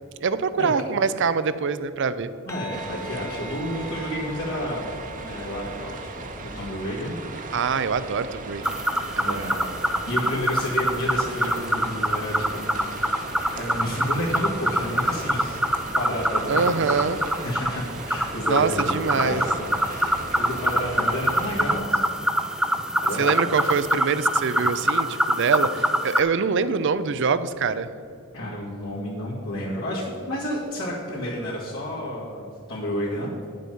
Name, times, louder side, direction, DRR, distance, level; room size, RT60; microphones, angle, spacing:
voice 1, 0.2-2.3 7.5-8.8 9.2-9.4 16.5-17.2 18.5-19.4 23.2-27.9, right 5 dB, 60° right, 14 dB, 0.5 m, -24 dB
voice 2, 2.4-4.9 5.2-6.1 6.4-7.2 9.2-9.7 10.1-12.8 13.1-15.6 16.0-17.0 17.4-22.3 23.0-23.4 28.3-33.3, equal, 70° left, -8 dB, 1.9 m, -30 dB
sound 1, 2.5-11.2, right 1 dB, 15° left, 1.0 m, -46 dB
sound 2, 2.7-21.8, right 3 dB, 40° right, 0.9 m, -37 dB
sound 3, 8.6-26.2, equal, 5° right, 0.5 m, -25 dB
9.8 x 7.6 x 5.4 m, 2.5 s
head